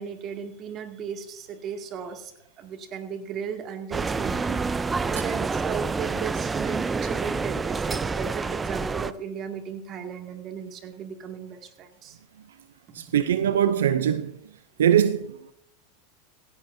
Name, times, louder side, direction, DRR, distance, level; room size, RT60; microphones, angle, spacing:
voice 1, 0.0-2.3 2.6-4.6 5.0-12.2 13.0-13.1 13.4-13.5, right 7 dB, 40° right, 2.2 m, -36 dB
sound 1, 3.9-9.1, right 4 dB, 15° right, 0.5 m, -28 dB
voice 2, 13.0-14.4 14.8-15.5, right 9 dB, 85° right, 0.6 m, -22 dB
16.5 x 16.0 x 2.7 m
hypercardioid pair, 110°, 0 cm